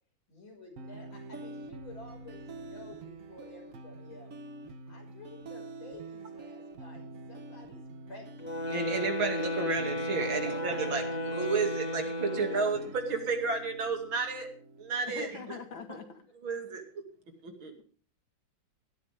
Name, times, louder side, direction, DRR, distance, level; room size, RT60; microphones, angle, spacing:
voice 1, 0.3-4.4 4.9-8.5 10.2-11.2 12.2-12.6 15.0-15.2, left 2 dB, 90° left, 1 dB, 6.4 m, -50 dB
sound 1, 0.8-15.8, right 2 dB, 50° right, 1.3 m, -46 dB
sound 2, 8.4-12.9, equal, 20° left, 2.8 m, -34 dB
voice 2, 8.7-14.5 14.8-15.6 15.9-16.0 16.4-17.0 17.4-17.7, right 4 dB, 85° right, 4 dB, 3.3 m, -32 dB
voice 3, 15.1-16.3, left 4 dB, 75° left, 7 dB, 2.6 m, -42 dB
17.5 x 13.5 x 3.5 m, 0.44 s
omnidirectional pair, 2.1 m